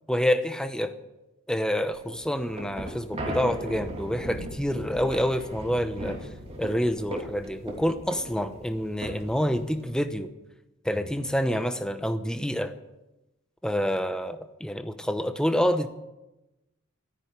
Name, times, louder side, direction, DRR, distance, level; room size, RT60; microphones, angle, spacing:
voice 1, 0.1-1.0 1.5-6.3 6.6-10.3 10.8-12.7 13.6-15.9, equal, 5° left, 9 dB, 0.8 m, -27 dB
sound 1, 1.9-10.1, right 1 dB, 30° right, 3.0 m, -38 dB
13.5 x 10.5 x 8.9 m, 0.98 s
head